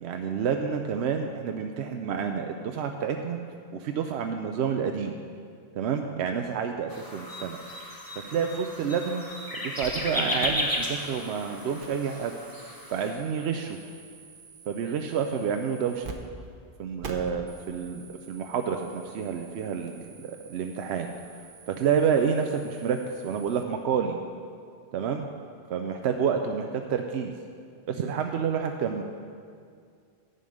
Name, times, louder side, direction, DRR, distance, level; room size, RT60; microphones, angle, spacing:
voice 1, 0.0-3.4 3.8-5.2 5.7-7.6 8.3-9.2 9.5-12.3 12.9-13.8 14.7-16.1 16.8-20.0 20.2-21.1 21.7-23.0 23.2-24.2 24.9-25.3 25.7-27.3 27.9-29.0, right 7 dB, 90° right, 5 dB, 0.9 m, -29 dB
sound 1, 6.9-13.1, left 1 dB, 20° left, 1.1 m, -34 dB
sound 2, 9.8-10.1 10.4-16.1 16.4-16.5 17.0-23.6, right 5 dB, 55° right, 1.0 m, -47 dB
11.0 x 5.4 x 7.7 m, 2.2 s
omnidirectional pair, 1.1 m